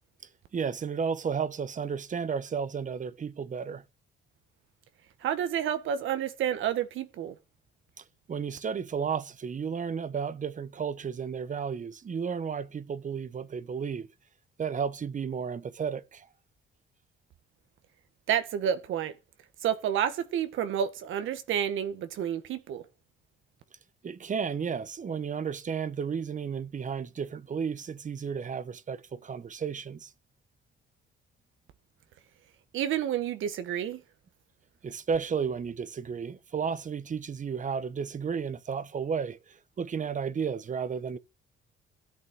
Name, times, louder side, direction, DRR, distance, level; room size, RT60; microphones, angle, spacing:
voice 1, 0.5-3.8 8.0-14.1 14.6-16.3 24.0-30.1 34.8-41.2, right 6 dB, 40° right, 1.0 m, -33 dB
voice 2, 5.2-7.3 18.3-19.1 19.6-22.8 32.7-34.0, right 9 dB, 80° right, 1.6 m, -29 dB
13.0 x 8.6 x 6.1 m
cardioid pair, 90°, 20 cm